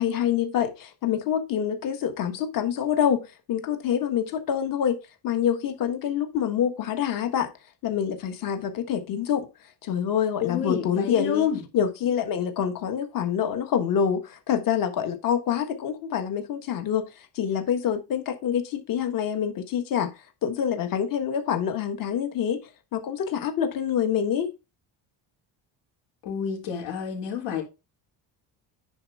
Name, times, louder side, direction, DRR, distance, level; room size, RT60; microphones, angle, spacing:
voice 1, 0.0-3.2 3.5-5.0 5.2-7.5 7.8-9.5 9.8-11.5 11.7-17.0 17.3-20.1 20.4-22.6 22.9-24.5, left 8 dB, 50° left, 1.4 m, -26 dB
voice 2, 10.4-11.6 26.2-27.6, left 8 dB, 85° left, 3.5 m, -28 dB
9.8 x 4.3 x 3.5 m
cardioid pair, 165°, 43 cm